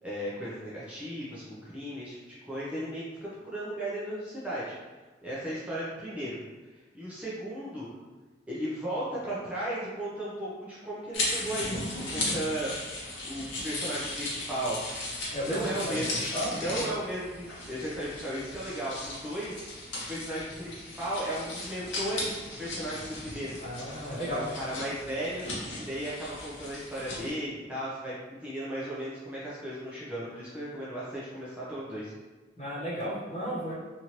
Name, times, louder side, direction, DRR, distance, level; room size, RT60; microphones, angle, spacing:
voice 1, 0.0-2.2 2.4-4.8 5.2-7.9 8.5-11.8 12.1-12.7 13.2-14.8 15.4-16.2 16.5-23.6 24.3-25.5 25.7-32.1, right 1 dB, 5° right, -9 dB, 0.5 m, -35 dB
sound 1, 11.1-27.3, left 2 dB, 85° left, 0.8 m, -37 dB
voice 2, 15.3-16.6 23.6-24.4 32.6-33.7, equal, 35° left, -7 dB, 0.9 m, -34 dB
3.0 x 2.6 x 2.8 m, 1.2 s
head